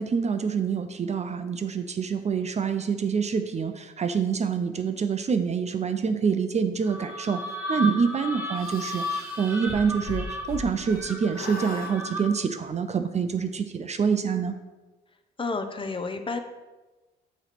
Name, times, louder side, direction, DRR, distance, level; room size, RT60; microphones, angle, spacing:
voice 1, 0.0-7.4 7.7-14.5, right 6 dB, 35° right, 9 dB, 0.5 m, -26 dB
sound 1, 6.8-12.5, left 1 dB, 10° right, 1.0 m, -34 dB
sound 2, 8.6-11.0 11.3-11.9, left 4 dB, 50° left, 1.0 m, -38 dB
voice 2, 15.4-16.4, left 3 dB, 25° left, 6 dB, 0.7 m, -30 dB
7.9 x 3.2 x 5.8 m, 1.2 s
cardioid pair, 90°, 20 cm